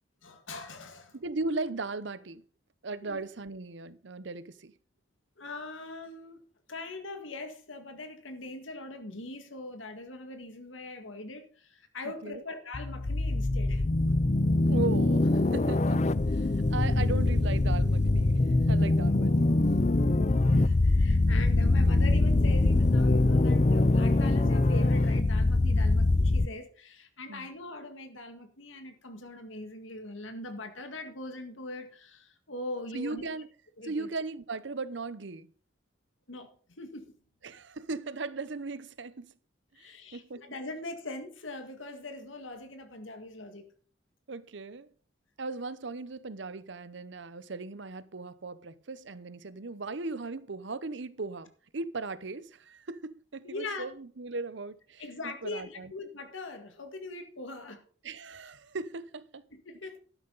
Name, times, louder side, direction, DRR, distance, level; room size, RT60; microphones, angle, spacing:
voice 1, 0.2-1.1 3.0-3.2 5.4-6.4 6.7-13.8 20.2-33.3 33.8-34.1 36.3-36.5 36.8-37.1 39.8-43.7 53.4-53.9 55.0-57.8 59.5-60.0, left 2 dB, 85° left, 2.0 m, -41 dB
voice 2, 1.1-2.4 2.8-4.7 12.2-12.4 14.7-19.5 27.3-27.5 32.9-33.5 33.8-35.5 37.4-39.3 39.8-40.5 44.3-44.9 45.4-55.9 58.0-59.4, right 3 dB, 70° right, 0.8 m, -37 dB
sound 1, 12.7-26.5, left 2 dB, 35° left, 0.5 m, -24 dB
12.5 x 10.5 x 4.0 m
head